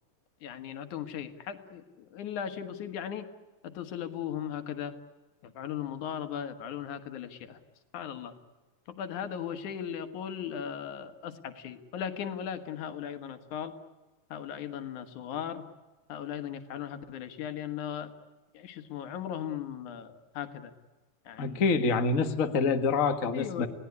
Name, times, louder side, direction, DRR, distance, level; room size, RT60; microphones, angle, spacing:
voice 1, 0.4-3.3 3.6-4.9 5.4-7.6 7.9-8.3 8.9-13.8 14.3-15.7 16.1-18.1 18.5-20.7 21.2-21.6 22.1-22.3 23.3-23.7, left 9 dB, 90° left, 9 dB, 3.0 m, -37 dB
voice 2, 21.4-23.7, left 4 dB, 35° left, 7 dB, 1.5 m, -26 dB
29.5 x 18.5 x 9.7 m, 1.3 s
omnidirectional pair, 3.3 m